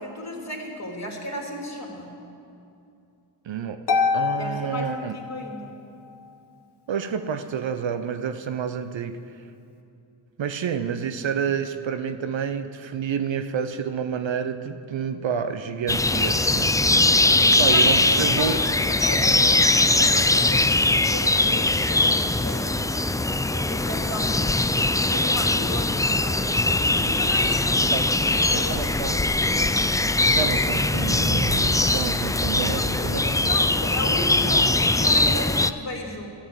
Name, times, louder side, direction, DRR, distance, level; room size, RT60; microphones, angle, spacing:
voice 1, 0.0-2.2 4.4-5.8 17.7-20.7 21.1-22.9 23.5-24.6 25.0-29.4 32.7-36.3, left 1 dB, 35° left, -1 dB, 3.0 m, -35 dB
voice 2, 3.4-3.8 4.1-5.1 6.9-9.2 10.4-16.8 17.6-18.5 27.9-28.0 28.7-29.2 30.3-33.3, right 7 dB, 65° right, 9 dB, 0.9 m, -29 dB
Harp, 3.9-5.8, left 5 dB, 55° left, 1.4 m, -26 dB
sound 1, 15.9-35.7, left 2 dB, 10° left, 0.3 m, -21 dB
13.0 x 8.7 x 7.6 m, 2.6 s
cardioid pair, 50°, 48 cm